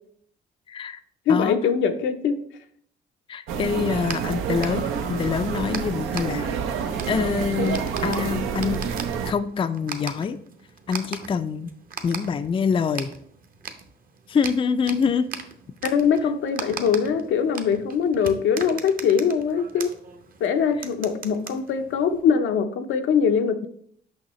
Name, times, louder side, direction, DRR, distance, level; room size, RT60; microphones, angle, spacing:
voice 1, 0.7-1.0 1.3-1.6 3.3-6.5 7.1-8.8 9.3-10.4 10.9-11.7 12.0-13.1 14.3-15.3, left 6 dB, 25° left, 10 dB, 0.4 m, -25 dB
voice 2, 1.3-2.4 15.8-19.9 20.4-23.7, left 6 dB, 80° left, 7 dB, 0.7 m, -22 dB
sound 1, 3.5-9.3, right 7 dB, 90° right, 0.6 m, -28 dB
sound 2, 3.8-22.2, right 5 dB, 45° right, 0.8 m, -40 dB
6.4 x 5.5 x 3.0 m, 0.64 s
cardioid pair, 90°, 20 cm